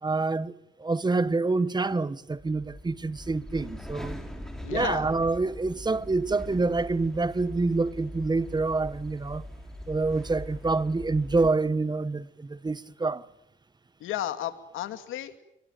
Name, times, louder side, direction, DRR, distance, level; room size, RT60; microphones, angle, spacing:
voice 1, 0.0-4.2 4.7-9.5 9.9-13.2, right 3 dB, 20° right, 1.3 m, -27 dB
sound 1, 2.3-11.5, left 1 dB, ahead, 5.4 m, -42 dB
voice 2, 4.6-5.1 14.0-15.4, left 12 dB, 90° left, 2.5 m, -33 dB
26.0 x 23.5 x 9.3 m
cardioid pair, 90°, 20 cm